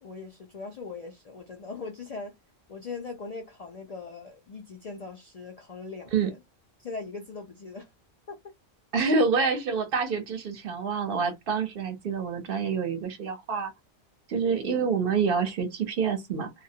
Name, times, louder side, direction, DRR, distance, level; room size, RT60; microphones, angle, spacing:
voice 1, 0.0-2.3 2.7-6.4 6.8-7.9, left 4 dB, 55° left, 0.4 m, -40 dB
voice 2, 8.9-13.7 14.3-16.5, right 5 dB, 60° right, 0.8 m, -27 dB
2.3 x 2.0 x 2.7 m
omnidirectional pair, 1.1 m